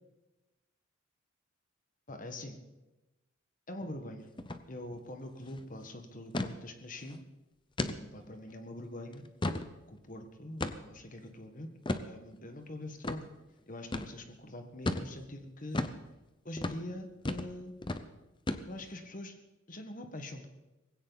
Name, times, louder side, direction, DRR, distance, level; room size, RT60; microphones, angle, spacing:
voice 1, 2.1-2.6 3.7-4.3 4.7-7.2 7.8-9.3 9.9-11.7 12.1-13.3 13.7-15.9 16.5-17.8 18.7-19.4 19.7-20.5, left 1 dB, 40° left, 6 dB, 1.6 m, -44 dB
sound 1, 4.4-4.6 4.9-5.0 5.4-5.6 6.3-6.5 7.0-7.2 7.8-8.0 8.5-8.6 9.1-9.7 10.6-11.0 11.9-12.1 13.0-13.2 13.9-14.1 14.9-15.1 15.7-16.0 16.6-16.8 17.3-17.5 17.8-18.0 18.5-18.9, left 2 dB, 25° left, 0.8 m, -34 dB
19.5 x 16.5 x 4.1 m, 1.1 s
head